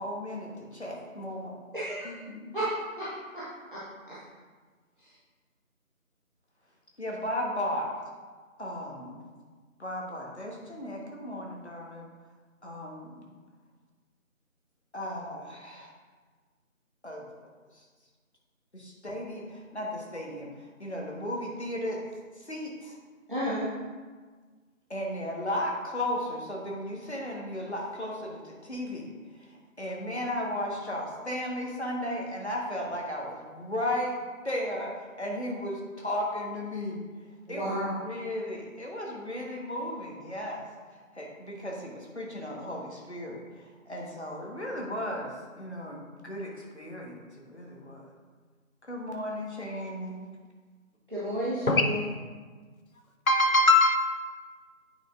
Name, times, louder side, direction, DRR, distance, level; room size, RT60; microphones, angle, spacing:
voice 1, 0.0-1.6 2.0-2.5 7.0-7.9 8.6-9.2 9.8-12.1 12.6-13.3 14.9-15.9 17.0-17.8 18.7-22.0 22.3-23.0 24.9-34.2 34.4-37.0 37.5-48.1 48.9-50.3, left 1 dB, 50° left, -2 dB, 1.4 m, -35 dB
voice 2, 1.7-2.2 2.5-3.4 3.7-4.2 5.0-5.1 23.3-23.7 37.5-37.9 51.1-52.1, equal, 40° right, -10 dB, 1.2 m, -32 dB
voice 3, 53.3-54.0, left 2 dB, 80° left, 4 dB, 1.0 m, -20 dB
8.8 x 5.5 x 2.5 m, 1.4 s
figure-of-eight pair, 175°, 41 cm